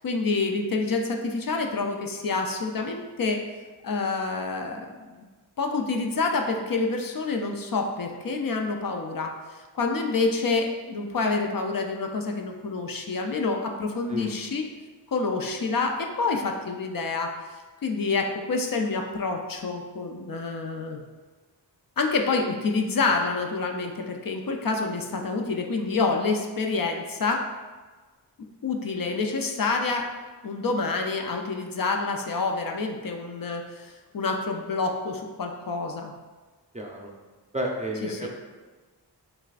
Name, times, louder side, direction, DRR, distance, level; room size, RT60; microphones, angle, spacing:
voice 1, 0.0-3.4 3.8-5.1 5.6-14.7 15.1-17.3 17.8-21.0 22.0-27.4 28.6-30.1 30.4-36.1 38.1-38.3, left 3 dB, 50° left, 3 dB, 0.5 m, -27 dB
voice 2, 36.7-37.1 37.5-38.3, right 1 dB, 15° right, -1 dB, 0.5 m, -31 dB
6.2 x 2.4 x 2.4 m, 1.3 s
wide cardioid pair, 65°, 44 cm